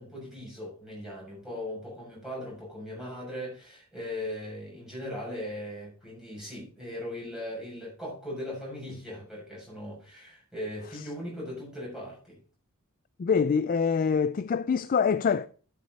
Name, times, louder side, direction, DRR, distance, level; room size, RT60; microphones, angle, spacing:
voice 1, 0.0-12.4, left 1 dB, 5° right, 6.7 m, -39 dB
voice 2, 13.2-15.5, left 6 dB, 40° left, 0.3 m, -25 dB
12.0 x 7.1 x 4.0 m
head